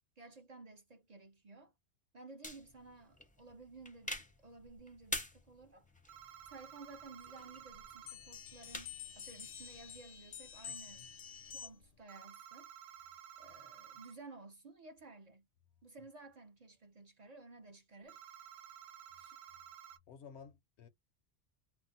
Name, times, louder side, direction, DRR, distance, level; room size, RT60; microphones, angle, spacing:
voice 1, 0.2-1.7 2.1-5.9 6.5-11.1 11.5-12.7 13.4-15.5 15.8-18.2 19.2-19.4, right 3 dB, 45° right, 0.6 m, -55 dB
sound 1, 2.4-10.0, left 1 dB, 10° left, 0.5 m, -48 dB
sound 2, 6.1-8.2 12.1-14.2 18.1-20.0, right 9 dB, 75° right, 0.9 m, -53 dB
sound 3, 8.0-12.0, left 8 dB, 55° left, 0.7 m, -49 dB
voice 2, 10.7-11.1 20.1-20.9, left 6 dB, 80° left, 1.0 m, -55 dB
2.5 x 2.1 x 3.9 m
omnidirectional pair, 1.1 m